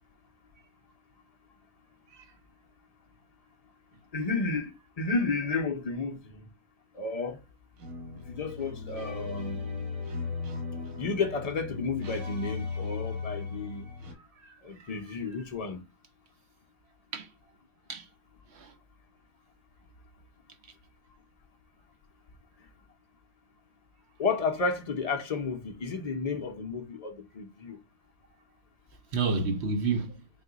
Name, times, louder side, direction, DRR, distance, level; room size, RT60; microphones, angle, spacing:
voice 1, 4.1-6.5 6.9-7.4 8.3-9.6 11.0-13.8 14.6-15.8 24.2-27.8, left 4 dB, 80° left, 0.3 m, -32 dB
sound 1, 7.8-14.1, left 4 dB, 75° right, 1.4 m, -37 dB
voice 2, 29.1-30.3, right 4 dB, 55° right, 1.0 m, -30 dB
4.2 x 2.3 x 3.8 m
omnidirectional pair, 1.5 m